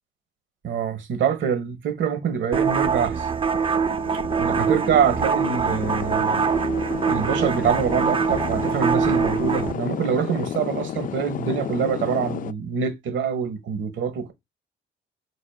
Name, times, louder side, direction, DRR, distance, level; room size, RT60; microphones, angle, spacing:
voice 1, 0.6-3.3 4.4-6.4 7.1-14.3, right 7 dB, 70° right, 1.2 m, -25 dB
sound 1, 2.5-9.7, right 6 dB, 25° right, 0.5 m, -24 dB
sound 2, 3.1-12.5, left 10 dB, 45° left, 0.4 m, -32 dB
5.0 x 4.6 x 2.3 m
cardioid pair, 90°, 20 cm